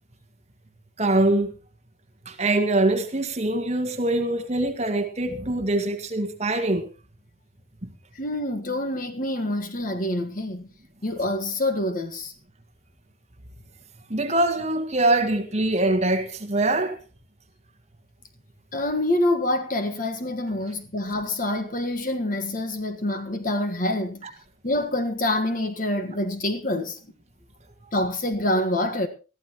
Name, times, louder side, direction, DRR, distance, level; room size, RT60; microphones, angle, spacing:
voice 1, 1.0-1.5 2.3-6.9 14.1-17.0, right 2 dB, 30° right, 1.8 m, -23 dB
voice 2, 8.1-10.7 11.0-12.3 18.7-24.2 24.6-27.0 27.9-29.1, left 1 dB, 40° left, 1.5 m, -26 dB
21.0 x 14.0 x 3.0 m
head